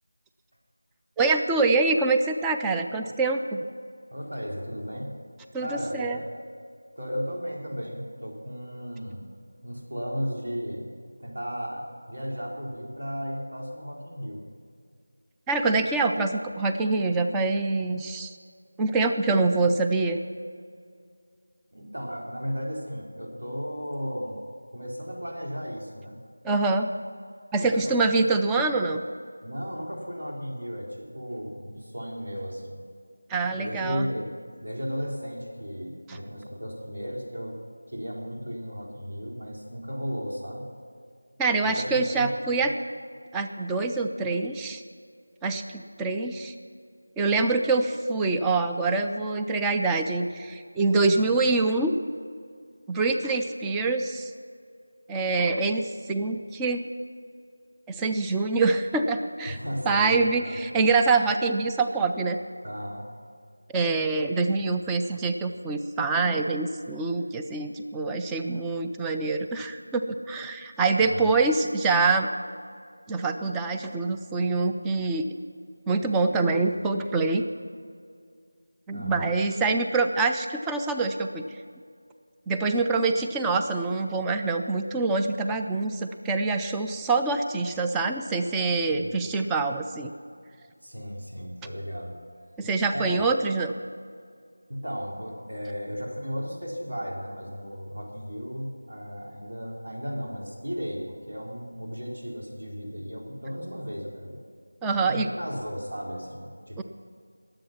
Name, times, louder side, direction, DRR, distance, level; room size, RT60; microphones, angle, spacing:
voice 1, 1.2-3.6 5.5-6.2 15.5-18.3 18.8-20.2 26.4-26.9 27.5-29.0 33.3-34.1 36.1-36.2 41.4-42.7 43.3-44.8 45.4-46.5 47.2-51.9 52.9-54.3 55.1-56.8 57.9-59.6 59.9-62.4 63.7-72.3 73.1-75.3 75.9-77.4 78.9-81.5 82.5-90.1 92.6-93.7 104.8-105.3 106.8-106.9, right 3 dB, 5° right, 4 dB, 0.3 m, -25 dB
voice 2, 4.1-5.2 5.6-6.2 7.0-9.2 9.6-10.9 11.2-14.4 21.7-24.4 24.7-26.2 27.6-28.1 29.4-32.8 33.5-37.6 37.9-40.7 41.6-42.7 51.1-51.2 59.5-60.6 62.6-63.1 71.0-71.3 78.9-79.3 88.9-89.2 90.8-92.2 92.9-93.2 94.7-104.4 105.0-106.8, equal, 85° right, -1 dB, 3.7 m, -35 dB
20.5 x 7.8 x 5.9 m, 2.2 s
figure-of-eight pair, 175°, 0 cm